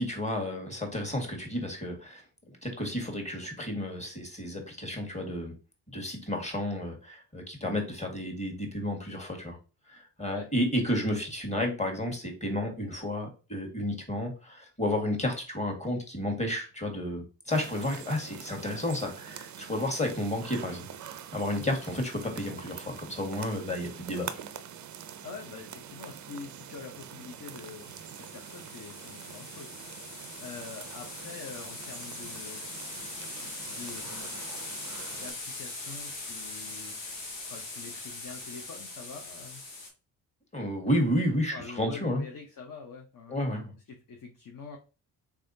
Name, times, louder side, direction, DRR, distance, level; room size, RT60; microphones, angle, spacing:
voice 1, 0.0-5.5 5.9-9.6 9.9-24.4 40.5-42.2 43.3-43.7, left 1 dB, 15° left, 2 dB, 1.6 m, -32 dB
sound 1, 17.5-35.3, right 9 dB, 40° right, 0.5 m, -45 dB
voice 2, 25.2-30.1 30.4-32.6 33.3-34.3 35.1-37.0 37.5-39.6 41.5-43.4 43.9-44.8, left 5 dB, 40° left, 2 dB, 0.9 m, -45 dB
sound 2, 27.5-39.9, left 3 dB, 90° left, 1.1 m, -41 dB
3.5 x 3.4 x 2.7 m, 0.32 s
supercardioid pair, 55°, 49 cm